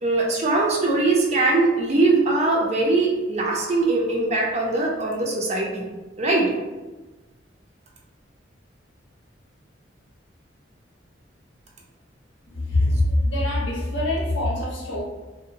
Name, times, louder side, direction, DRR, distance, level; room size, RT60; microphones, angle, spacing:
voice 1, 0.0-5.8 6.2-6.5, right 2 dB, 35° right, -1 dB, 0.4 m, -21 dB
voice 2, 12.5-15.0, left 1 dB, 80° left, -5 dB, 0.8 m, -23 dB
2.5 x 2.0 x 2.7 m, 1.2 s
head